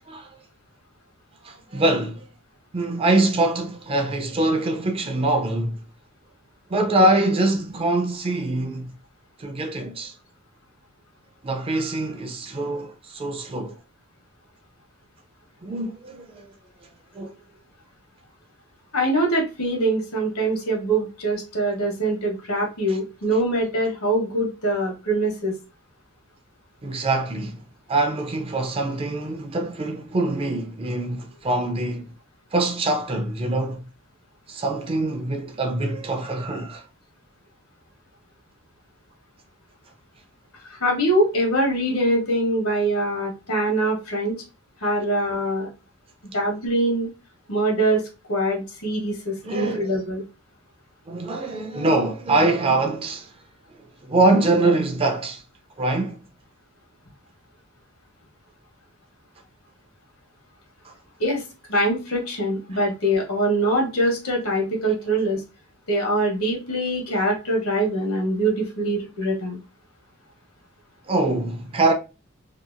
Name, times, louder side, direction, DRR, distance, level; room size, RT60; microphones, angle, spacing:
voice 1, 1.4-2.3 2.7-5.8 6.7-8.9 9.4-10.1 11.4-13.8 15.6-16.5 17.1-17.3 22.9-23.0 26.8-27.6 27.9-32.0 32.5-33.8 34.5-36.8 49.4-49.9 51.1-53.3 54.0-55.4 55.8-56.2 60.8-60.9 62.7-62.8 71.1-71.9, right 2 dB, 25° right, 0.3 m, -24 dB
voice 2, 18.9-25.5 40.7-44.3 44.8-45.7 46.3-47.1 47.5-48.0 48.3-50.2 61.2-61.4 61.7-65.4 65.9-69.6, right 1 dB, 75° left, 1.1 m, -23 dB
2.8 x 2.4 x 2.4 m
head